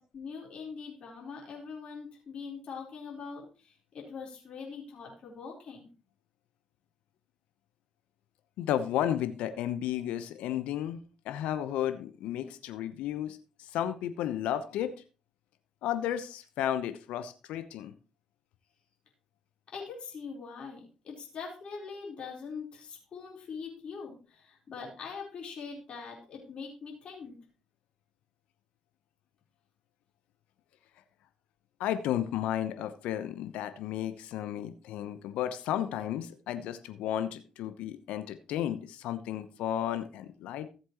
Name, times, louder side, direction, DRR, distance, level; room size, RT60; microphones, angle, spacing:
voice 1, 0.0-5.9 19.7-27.4, left 5 dB, 55° left, -2 dB, 4.1 m, -43 dB
voice 2, 8.6-11.0 11.2-13.4 13.7-14.9 15.8-17.9 31.8-40.7, left 11 dB, 75° left, 11 dB, 0.9 m, -33 dB
15.0 x 7.8 x 3.0 m, 0.34 s
hypercardioid pair, 50°, 2 cm